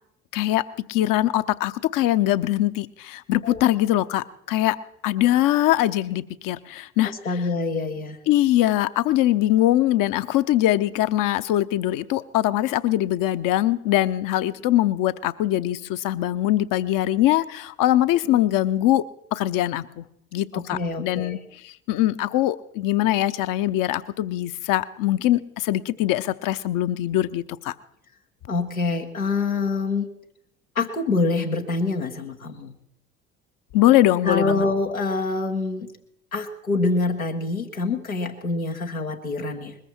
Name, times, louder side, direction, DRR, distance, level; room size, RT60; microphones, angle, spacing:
voice 1, 0.3-0.6 0.9-4.8 5.0-7.4 8.3-19.0 19.3-20.1 20.3-21.4 21.6-27.7 33.7-34.6, left 14 dB, 50° left, 13 dB, 0.9 m, -22 dB
voice 2, 7.2-8.2 20.5-21.4 28.5-30.1 30.8-32.7 34.2-35.9 36.3-39.8, left 3 dB, 90° left, 1 dB, 1.2 m, -25 dB
21.0 x 14.5 x 4.4 m, 0.74 s
figure-of-eight pair, 55°, 41 cm